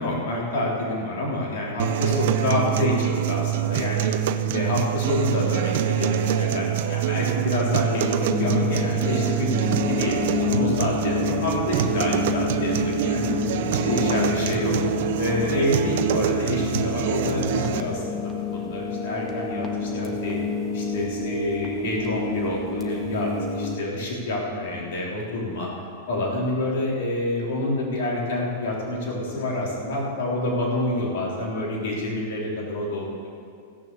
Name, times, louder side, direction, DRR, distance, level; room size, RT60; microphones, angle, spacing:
voice 1, 0.0-4.1 4.5-13.3 13.9-14.8 15.2-20.4 20.7-25.7 26.1-33.3, left 1 dB, 65° left, -4 dB, 3.7 m, -27 dB
sound 1, 1.8-17.8, right 10 dB, 65° right, 0.6 m, -25 dB
sound 2, 8.0-23.8, left 4 dB, 20° left, 1.5 m, -29 dB
16.0 x 6.6 x 7.0 m, 2.4 s
hypercardioid pair, 135°, 0 cm